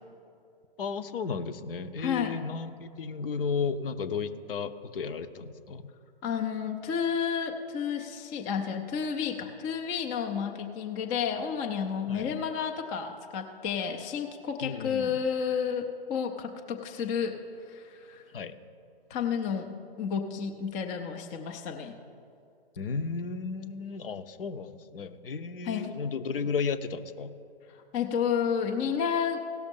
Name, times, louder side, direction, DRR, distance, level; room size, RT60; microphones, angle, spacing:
voice 1, 0.8-5.9 12.1-12.3 14.6-15.2 18.3-18.5 22.8-27.3, left 5 dB, 65° left, 11 dB, 0.7 m, -34 dB
voice 2, 2.0-2.3 6.2-17.4 17.7-18.2 19.1-22.0 25.7-26.0 27.7-29.4, left 7 dB, 15° left, 3 dB, 0.3 m, -31 dB
16.5 x 6.3 x 5.2 m, 2.6 s
figure-of-eight pair, 125°, 30 cm